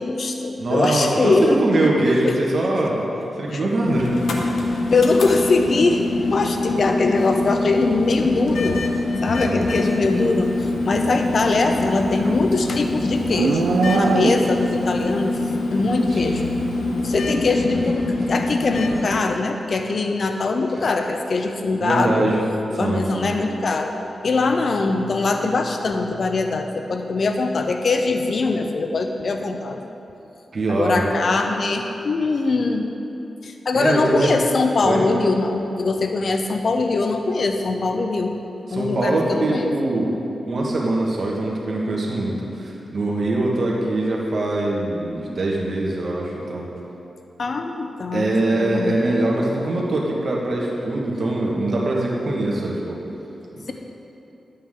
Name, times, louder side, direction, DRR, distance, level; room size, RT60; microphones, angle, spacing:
voice 1, 0.0-1.6 2.2-2.3 3.5-3.7 4.9-8.8 9.2-15.4 15.7-16.5 17.0-22.3 22.8-23.9 24.2-29.9 30.7-32.9 33.4-38.4 38.7-39.7 47.4-49.1, left 3 dB, 60° left, 5 dB, 0.6 m, -22 dB
voice 2, 0.6-3.0 3.4-4.2 9.4-9.8 16.1-16.4 17.7-18.1 20.7-20.8 21.8-22.4 22.8-23.3 30.5-31.1 33.7-34.4 34.8-35.1 38.7-40.2 40.5-46.7 48.1-53.0 53.5-53.7, right 2 dB, 60° right, -3 dB, 1.7 m, -23 dB
sound 1, 3.8-19.0, left 2 dB, 90° left, 0.9 m, -25 dB
Livestock farm animals working animals, 11.5-14.8, right 5 dB, 80° right, 0.4 m, -24 dB
11.5 x 8.6 x 3.8 m, 2.9 s
cardioid pair, 75°, 0 cm